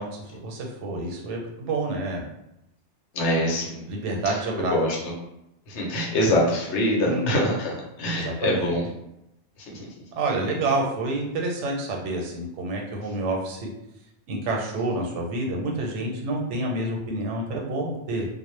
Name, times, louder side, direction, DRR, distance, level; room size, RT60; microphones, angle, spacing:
voice 1, 0.0-2.2 3.9-4.8 7.0-7.4 8.1-8.8 10.2-13.7 14.3-18.3, right 2 dB, 90° right, 0 dB, 0.9 m, -28 dB
voice 2, 3.1-3.8 4.6-5.0 5.7-8.9 9.7-9.9, left 1 dB, 75° left, -1 dB, 0.9 m, -24 dB
2.0 x 2.0 x 3.0 m, 0.85 s
omnidirectional pair, 1.2 m